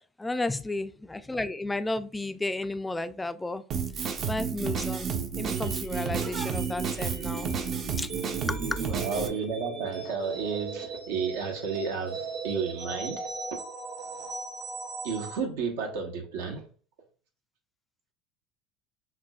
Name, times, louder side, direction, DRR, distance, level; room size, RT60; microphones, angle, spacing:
voice 1, 0.2-3.6 4.0-7.5 8.0-8.1 8.5-8.8, left 2 dB, 10° left, 0.3 m, -33 dB
Drum kit, 3.7-9.3, right 6 dB, 45° right, 0.6 m, -31 dB
sound 1, 5.5-15.4, right 4 dB, 70° right, 1.4 m, -38 dB
voice 2, 8.8-13.3 15.0-16.7, right 5 dB, 90° right, 1.1 m, -32 dB
5.9 x 2.1 x 2.3 m
supercardioid pair, 105°, 0 cm